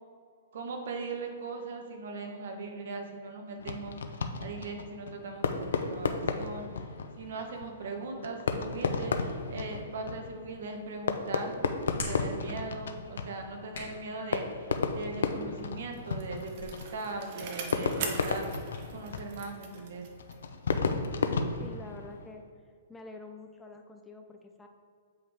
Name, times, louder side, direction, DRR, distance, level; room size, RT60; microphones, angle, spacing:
voice 1, 0.5-6.7 7.2-11.5 11.9-18.7 18.9-20.1, right 3 dB, 55° right, 3 dB, 1.1 m, -39 dB
Fireworks, 3.6-22.4, left 4 dB, 85° left, 0.6 m, -34 dB
Hands, 10.5-18.9, left 3 dB, 70° left, 1.8 m, -48 dB
Bicycle, 15.7-20.6 20.9-21.0, right 5 dB, 35° right, 0.8 m, -42 dB
voice 2, 21.6-22.4 22.9-24.7, left 3 dB, 5° left, 3 dB, 0.3 m, -47 dB
7.6 x 5.3 x 3.4 m, 2.2 s
hypercardioid pair, 175°, 0 cm